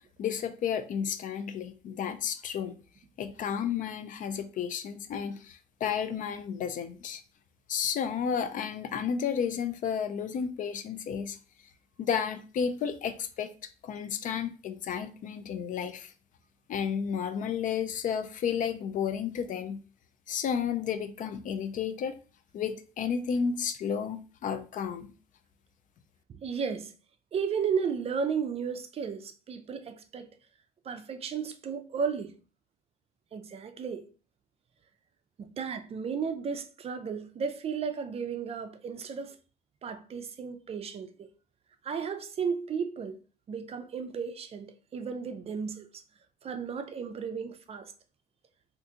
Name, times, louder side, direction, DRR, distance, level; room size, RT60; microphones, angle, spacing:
voice 1, 0.2-2.7 3.2-7.2 7.7-11.4 12.0-13.5 13.8-16.1 16.7-19.8 20.3-22.2 22.5-25.1, left 7 dB, 50° left, 0.4 m, -32 dB
voice 2, 26.3-26.9 27.3-30.3 30.8-32.3 33.3-34.1 35.4-39.4 39.8-41.3 41.8-43.2 43.5-46.0 46.4-47.9, right 6 dB, 35° right, 0.4 m, -34 dB
2.7 x 2.5 x 3.5 m
cardioid pair, 110°, 17 cm